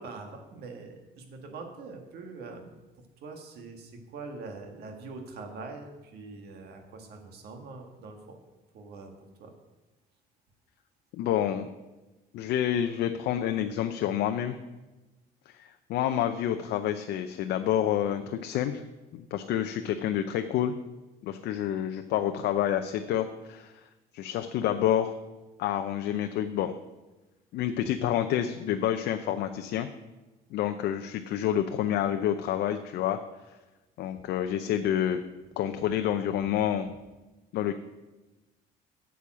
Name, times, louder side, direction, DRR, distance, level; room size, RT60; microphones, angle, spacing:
voice 1, 0.0-2.8 3.2-8.4 8.7-9.1 9.4-9.5 27.8-27.9 34.2-34.3, right 3 dB, 70° right, 4 dB, 1.7 m, -43 dB
voice 2, 11.1-11.7 12.3-14.6 15.5-15.6 15.9-18.8 19.1-20.7 21.2-23.7 24.1-25.1 25.6-26.8 27.5-29.9 30.5-33.2 34.0-35.2 35.6-36.9 37.5-37.8, left 10 dB, 75° left, 7 dB, 0.6 m, -28 dB
8.4 x 7.1 x 6.2 m, 1.1 s
cardioid pair, 110°, 17 cm